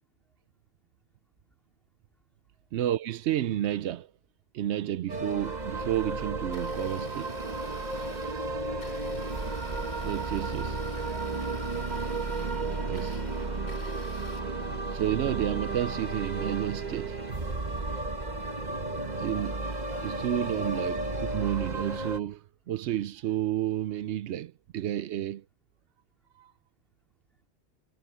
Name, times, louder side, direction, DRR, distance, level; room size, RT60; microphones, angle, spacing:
voice 1, 2.7-4.1 4.5-7.3 10.0-10.8 12.8-13.2 14.6-17.2 19.2-19.6 20.0-25.4 26.4-26.5, right 12 dB, 85° right, 0.9 m, -31 dB
sound 1, 5.1-22.2, right 3 dB, 40° right, 1.5 m, -33 dB
Domestic sounds home sounds, 6.4-14.4, left 2 dB, 75° left, 3.1 m, -50 dB
voice 2, 8.3-9.4 10.9-11.5, equal, ahead, 3.8 m, -56 dB
omnidirectional pair, 1.1 m